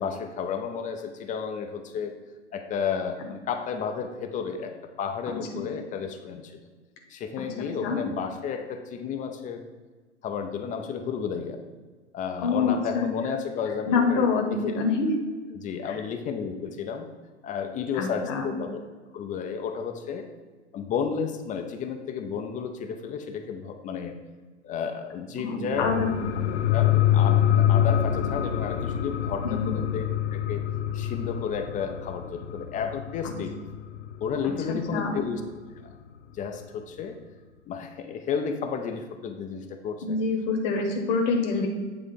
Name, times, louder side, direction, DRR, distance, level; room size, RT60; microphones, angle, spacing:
voice 1, 0.0-2.1 2.5-6.6 7.1-9.6 10.2-11.6 12.1-14.8 15.5-17.1 17.4-18.8 19.1-20.3 20.7-24.2 24.6-25.9 26.7-30.1 30.3-30.6 30.9-33.5 34.2-35.4 35.8-35.9 36.3-37.2 37.7-40.2, left 6 dB, 20° left, 6 dB, 0.5 m, -32 dB
voice 2, 5.3-5.6 7.8-8.0 12.4-13.0 13.9-15.1 15.8-16.0 17.9-18.5 25.4-26.1 29.4-29.7 33.2-33.3 34.9-35.1 40.0-41.7, left 4 dB, 45° left, 3 dB, 1.2 m, -26 dB
sound 1, 25.7-34.8 35.2-35.3, left 11 dB, 70° left, 0.6 m, -26 dB
8.8 x 3.6 x 5.1 m, 1.4 s
figure-of-eight pair, 95°, 35 cm